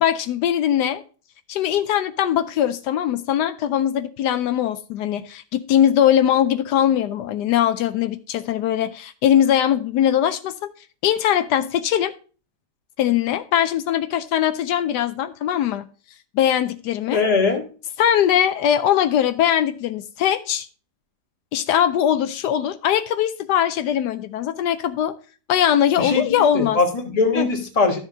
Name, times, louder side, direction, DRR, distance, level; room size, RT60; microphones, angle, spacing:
voice 1, 0.0-1.0 1.5-10.6 11.0-12.1 13.0-15.8 16.3-17.2 18.0-20.7 21.5-25.1 25.5-26.8 27.4-27.5, left 10 dB, 80° left, 1.2 m, -21 dB
voice 2, 17.1-17.7 26.0-28.0, left 4 dB, 25° left, 1.2 m, -21 dB
13.0 x 6.9 x 2.7 m
omnidirectional pair, 1.8 m